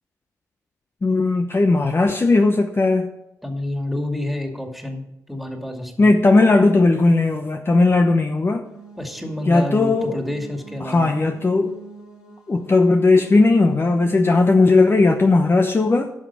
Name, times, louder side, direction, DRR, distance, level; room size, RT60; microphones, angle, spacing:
voice 1, 1.0-3.1 6.0-8.6 9.5-10.2 10.8-11.8 12.5-16.1, left 3 dB, 35° left, 5 dB, 0.9 m, -17 dB
voice 2, 3.4-5.0 5.3-6.1 9.0-11.1, left 1 dB, ahead, 3 dB, 2.4 m, -28 dB
sound 1, 8.7-14.6, right 6 dB, 85° left, 5.1 m, -42 dB
11.0 x 6.1 x 7.0 m, 0.87 s
supercardioid pair, 50°, 7 cm